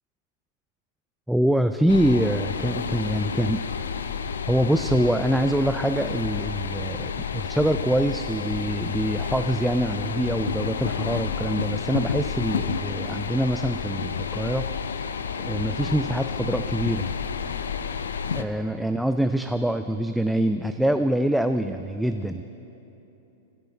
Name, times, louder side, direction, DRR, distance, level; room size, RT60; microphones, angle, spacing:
voice 1, 1.3-3.6 4.5-15.1 15.4-17.1 18.3-22.4, right 1 dB, ahead, 8 dB, 0.3 m, -25 dB
sound 1, 1.9-18.4, left 6 dB, 75° left, 0.5 m, -30 dB
13.0 x 6.7 x 7.2 m, 3.0 s
hypercardioid pair, 105°, 0 cm